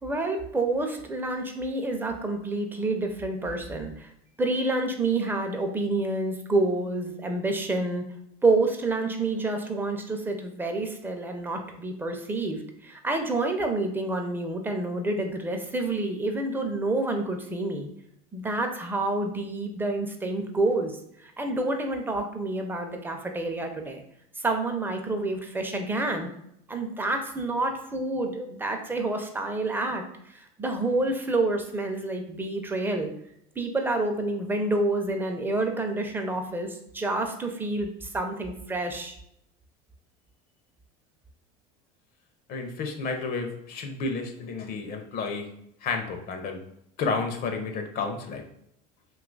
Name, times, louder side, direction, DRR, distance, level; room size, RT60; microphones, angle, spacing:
voice 1, 0.0-4.1 4.4-8.0 8.4-17.9 18.3-24.0 24.4-26.3 26.7-33.1 33.6-39.2, right 2 dB, 10° right, 4 dB, 0.5 m, -28 dB
voice 2, 42.5-45.5 45.8-46.6 47.0-48.4, left 4 dB, 50° left, 5 dB, 0.6 m, -31 dB
2.8 x 2.4 x 3.8 m, 0.75 s
supercardioid pair, 105°, 20 cm